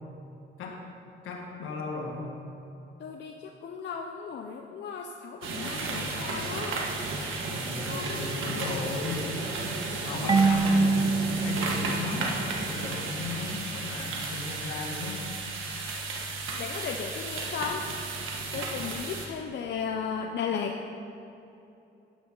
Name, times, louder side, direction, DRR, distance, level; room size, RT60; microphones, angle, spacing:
voice 1, 1.2-2.3 7.5-9.3 9.9-11.2 11.4-12.3 12.6-15.3, left 3 dB, 85° left, 0 dB, 1.9 m, -35 dB
voice 2, 3.0-6.8 7.8-8.6 16.6-17.8 18.5-20.8, left 6 dB, 60° left, 2 dB, 0.7 m, -35 dB
sound 1, 5.4-19.3, right 3 dB, 85° right, 1.6 m, -33 dB
Marimba xylophone / Wood, 10.3-13.0, right 3 dB, 20° right, 0.4 m, -26 dB
12.0 x 9.2 x 3.9 m, 2.8 s
cardioid pair, 90°, 20 cm